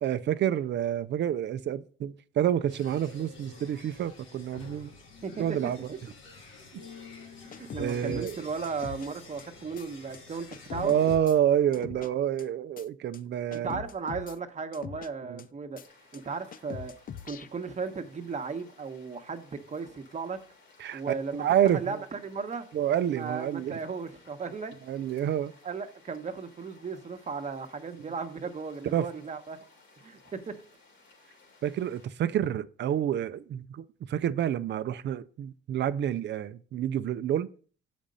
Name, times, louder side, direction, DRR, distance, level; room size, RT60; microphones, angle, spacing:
voice 1, 0.0-4.9 5.4-5.9 7.8-8.4 10.8-13.8 15.2-15.4 20.8-21.0 21.3-22.0 22.7-23.8 24.9-25.5 28.9-29.1 31.6-37.5, right 10 dB, 60° right, 0.6 m, -28 dB
sound 1, 2.7-11.2, left 5 dB, 90° left, 1.9 m, -48 dB
voice 2, 5.2-5.9 7.4-10.9 13.5-15.8 16.1-16.9 17.2-20.4 20.9-22.7 23.1-24.8 25.6-29.6 30.0-30.6, right 5 dB, 35° right, 1.1 m, -36 dB
sound 2, 7.5-8.4 8.6-9.1 9.4-9.5 9.8-9.9 10.1-10.2 10.5-11.4 11.7-12.1 12.4-12.5 12.8-12.9 13.1-13.2 13.5-14.4 14.7-15.1 15.4-15.5 15.8-15.9 16.1-16.2 16.5-17.5, left 8 dB, 45° left, 0.5 m, -42 dB
sound 3, 15.8-32.1, left 3 dB, 70° left, 2.8 m, -59 dB
7.3 x 5.2 x 5.3 m
cardioid pair, 90°, 20 cm